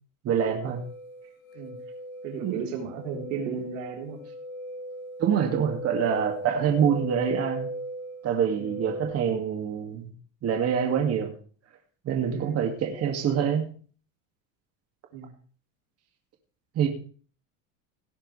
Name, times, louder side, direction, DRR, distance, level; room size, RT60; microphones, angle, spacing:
voice 1, 0.2-0.8 2.4-2.6 5.2-7.7 8.2-10.1 10.4-11.3 12.1-13.7 16.8-16.9, right 8 dB, 40° right, 2 dB, 2.3 m, -25 dB
sound 1, 0.6-9.1, equal, 50° left, 1.7 m, -38 dB
voice 2, 2.2-4.2 8.6-8.7 12.3-12.6 15.1-15.3, right 6 dB, 90° right, 1 dB, 3.9 m, -35 dB
17.5 x 9.7 x 3.3 m, 0.42 s
supercardioid pair, 130°, 38 cm